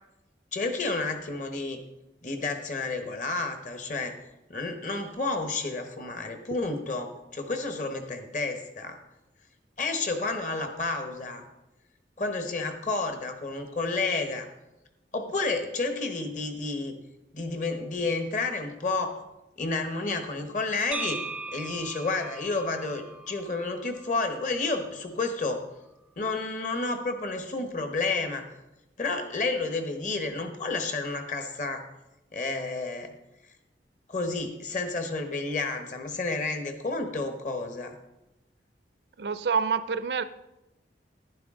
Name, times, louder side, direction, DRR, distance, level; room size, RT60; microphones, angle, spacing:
voice 1, 0.5-1.8 2.2-4.1 4.5-9.0 9.8-11.4 12.2-14.5 15.1-16.9 17.3-19.2 19.6-21.2 21.5-25.6 26.2-28.5 29.0-31.8 32.3-33.1 34.1-37.9, left 3 dB, 45° left, 6 dB, 1.1 m, -30 dB
Wind instrument woodwind instrument, 20.5-24.4, right 2 dB, 85° left, 1.4 m, -54 dB
sound 1, 20.9-25.0, right 3 dB, 5° right, 0.4 m, -39 dB
voice 2, 39.2-40.2, right 5 dB, 70° right, 13 dB, 0.5 m, -27 dB
11.0 x 10.5 x 3.7 m, 0.95 s
head